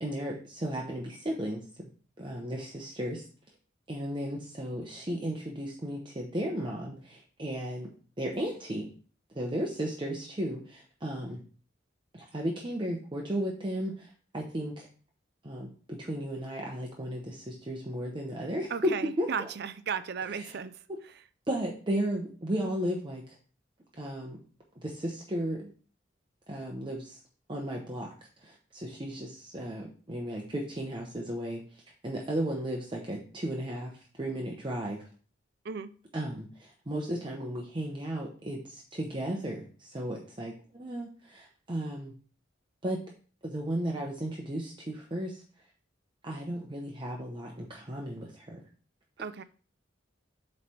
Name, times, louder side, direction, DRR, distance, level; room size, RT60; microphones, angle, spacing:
voice 1, 0.0-1.9 2.2-3.2 3.9-7.9 8.2-8.9 9.3-11.4 12.1-14.1 14.3-14.9 15.4-19.5 20.3-20.6 20.9-21.0 21.5-23.4 24.0-24.4 24.8-25.7 26.5-27.2 27.5-28.1 28.4-31.6 32.0-33.9 34.2-35.0 36.1-42.1 42.8-43.0 43.4-45.4 46.2-48.6, right 1 dB, 25° right, -1 dB, 0.8 m, -34 dB
voice 2, 18.7-20.7 35.6-35.9 49.2-49.4, right 6 dB, 60° right, 13 dB, 0.5 m, -35 dB
7.9 x 3.3 x 4.3 m, 0.41 s
head